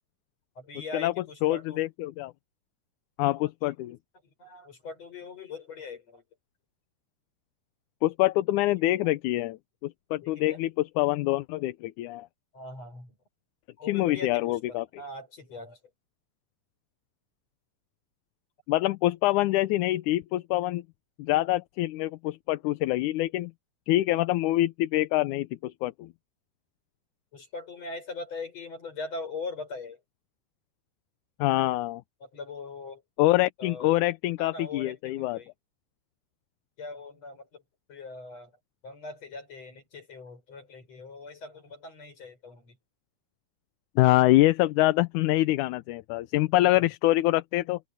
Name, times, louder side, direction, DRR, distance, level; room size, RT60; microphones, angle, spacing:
voice 1, 0.6-1.8 3.4-3.5 4.2-6.2 9.0-9.1 10.2-10.6 12.5-13.2 13.8-15.8 27.3-30.0 32.2-33.0 33.6-33.9 34.4-35.5 36.8-37.6 37.9-38.5 38.8-42.8 46.6-46.9, left 3 dB, 55° left, 8.0 m, -41 dB
voice 2, 1.4-2.3 3.2-4.0 8.0-12.3 13.9-14.9 18.7-20.8 21.2-23.5 23.9-26.1 31.4-32.0 33.2-35.4 44.0-47.8, left 17 dB, 80° left, 2.1 m, -25 dB
omnidirectional pair, 3.6 m